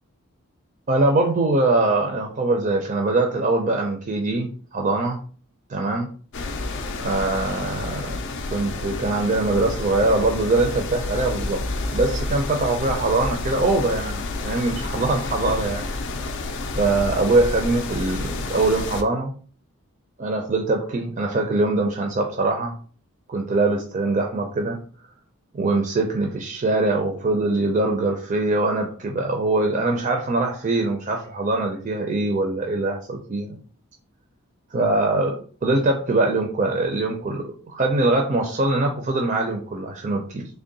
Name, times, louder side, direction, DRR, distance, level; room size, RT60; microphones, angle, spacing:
voice 1, 0.9-5.2 5.7-6.1 7.0-8.2 8.5-11.6 11.9-15.9 16.8-19.3 20.2-22.7 23.3-24.8 25.5-33.6 34.7-40.5, right 2 dB, 35° right, 3 dB, 0.4 m, -22 dB
sound 1, 6.3-19.0, left 2 dB, 55° left, 0.4 m, -30 dB
3.5 x 2.1 x 3.8 m, 0.42 s
head